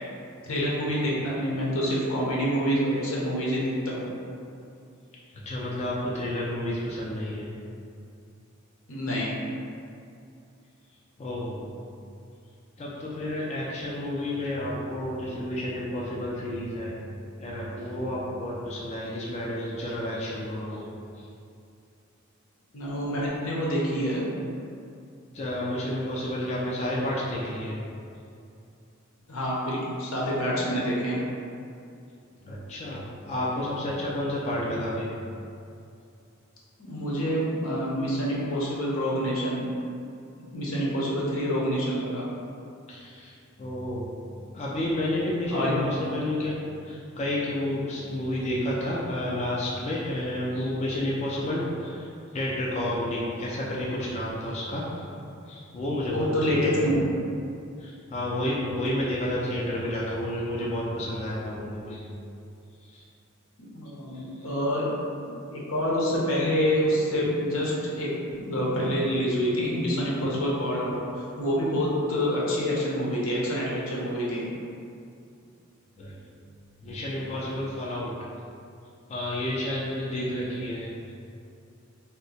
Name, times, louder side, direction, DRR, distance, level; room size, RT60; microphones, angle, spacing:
voice 1, 0.4-4.1 8.9-9.4 22.7-24.3 29.3-31.2 36.8-39.7 40.5-42.3 45.5-45.8 56.1-57.0 63.6-64.9 65.5-71.0 71.4-74.5 80.1-80.3, equal, 85° left, -5 dB, 0.8 m, -27 dB
voice 2, 5.3-7.5 11.2-11.7 12.8-16.9 17.4-20.9 21.1-21.3 25.3-27.8 32.4-35.1 42.9-44.1 44.5-46.6 46.8-55.1 55.5-56.8 57.8-62.1 62.8-63.1 64.1-64.5 76.0-76.2 76.8-78.1 79.1-80.9, left 1 dB, 30° left, -5 dB, 0.4 m, -31 dB
2.7 x 2.1 x 4.0 m, 2.6 s
head